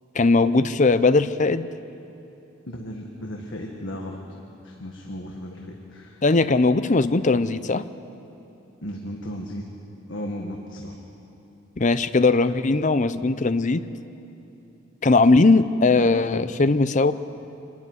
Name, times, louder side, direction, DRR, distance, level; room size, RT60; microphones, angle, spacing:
voice 1, 0.1-1.7 6.2-7.9 11.8-13.8 15.0-17.1, left 3 dB, 35° left, 13 dB, 0.6 m, -19 dB
voice 2, 2.7-4.2 4.6-6.2 8.8-9.7 10.1-11.0, equal, 65° left, 0 dB, 1.7 m, -35 dB
25.0 x 12.5 x 9.6 m, 2.9 s
head